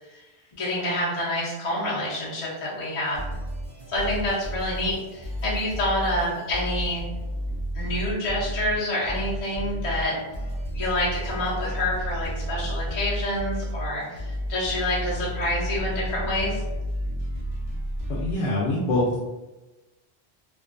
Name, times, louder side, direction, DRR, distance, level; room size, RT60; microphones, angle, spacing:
voice 1, 0.6-3.2 3.9-7.0 7.7-10.2 10.7-16.6, left 1 dB, 40° left, -6 dB, 0.5 m, -27 dB
sound 1, 3.1-18.3, equal, 50° right, 0.7 m, -32 dB
voice 2, 18.1-19.2, left 1 dB, 70° left, -5 dB, 0.8 m, -24 dB
2.5 x 2.2 x 2.4 m, 1.1 s
omnidirectional pair, 1.1 m